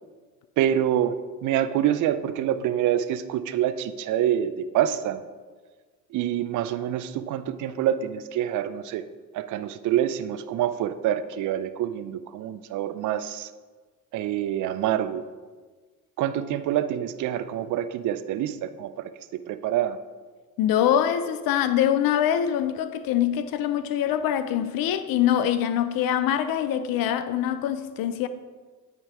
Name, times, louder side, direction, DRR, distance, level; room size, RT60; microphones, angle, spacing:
voice 1, 0.6-5.2 6.1-9.0 9.3-13.5 14.1-15.3 16.2-20.0, right 11 dB, 40° right, 0.5 m, -26 dB
voice 2, 20.6-28.3, left 10 dB, 50° left, 0.6 m, -24 dB
8.8 x 3.0 x 4.8 m
hypercardioid pair, 55°, 46 cm